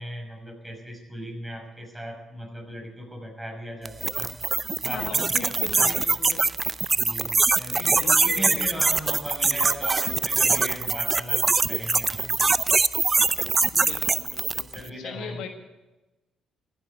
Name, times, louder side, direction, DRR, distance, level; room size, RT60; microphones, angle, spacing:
voice 1, 0.0-4.3 4.8-5.9 7.0-12.3 14.7-15.4, equal, 10° right, 2 dB, 6.3 m, -38 dB
sound 1, 3.8-14.8, right 4 dB, 35° right, 0.6 m, -23 dB
voice 2, 4.9-6.5 7.7-8.7 13.7-15.5, left 6 dB, 75° left, 5 dB, 1.6 m, -39 dB
15.0 x 9.0 x 9.5 m, 1.0 s
hypercardioid pair, 50°, 0 cm